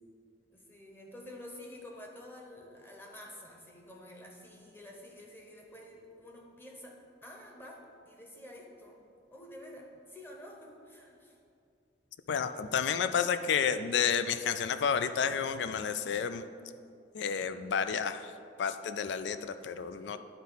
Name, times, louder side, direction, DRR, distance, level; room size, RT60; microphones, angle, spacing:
voice 1, 0.5-9.0 9.3-11.4, left 1 dB, 10° left, -1 dB, 1.0 m, -49 dB
voice 2, 12.3-16.4 17.1-18.3 18.6-20.2, left 7 dB, 65° left, 11 dB, 0.3 m, -31 dB
10.5 x 4.1 x 4.0 m, 2.4 s
head